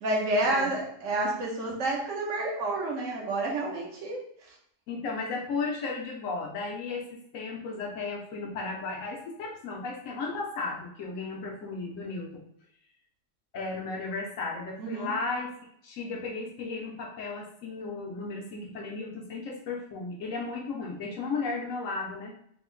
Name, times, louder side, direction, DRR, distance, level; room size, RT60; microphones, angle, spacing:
voice 1, 0.0-4.2 14.8-15.1, right 2 dB, 80° right, -2 dB, 1.3 m, -29 dB
voice 2, 4.9-7.0 7.3-12.4 13.5-15.5 15.8-22.3, left 3 dB, 90° left, 0 dB, 1.2 m, -34 dB
3.5 x 2.1 x 3.7 m, 0.68 s
omnidirectional pair, 1.3 m